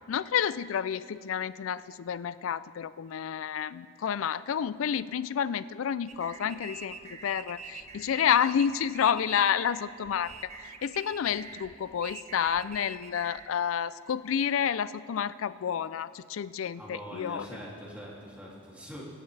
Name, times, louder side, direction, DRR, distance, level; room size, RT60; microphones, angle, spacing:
voice 1, 0.1-7.0 7.2-10.3 10.8-17.5, left 8 dB, 80° left, 17 dB, 0.4 m, -29 dB
sound 1, 6.1-13.5, right 4 dB, 35° right, 0.7 m, -45 dB
voice 2, 16.7-19.0, equal, 5° right, -5 dB, 2.6 m, -43 dB
23.5 x 11.5 x 3.3 m, 2.4 s
head